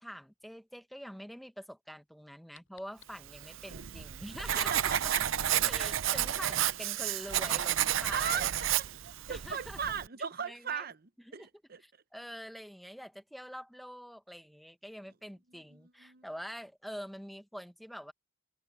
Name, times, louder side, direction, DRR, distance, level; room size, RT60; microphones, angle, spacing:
voice 1, 0.0-4.9 5.7-8.5 9.3-9.8 10.5-10.9 11.4-11.5 11.8-18.1, equal, ahead, 0.9 m, -45 dB
sound 1, 2.0-3.7, left 10 dB, 85° left, 7.8 m, -64 dB
Writing, 3.3-10.1, right 11 dB, 85° right, 0.6 m, -31 dB
voice 2, 4.5-5.2 8.1-8.5 9.0-11.8 15.7-16.3, right 7 dB, 50° right, 0.8 m, -37 dB
head